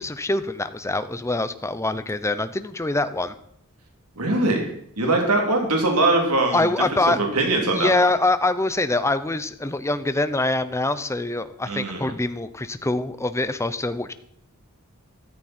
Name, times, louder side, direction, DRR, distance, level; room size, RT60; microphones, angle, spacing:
voice 1, 0.0-3.3 6.5-7.2 7.7-14.1, left 2 dB, 15° left, 12 dB, 0.8 m, -24 dB
voice 2, 4.2-6.7 7.1-8.1 11.7-12.1, right 2 dB, 90° right, 2 dB, 3.1 m, -22 dB
14.0 x 13.5 x 4.4 m, 0.70 s
head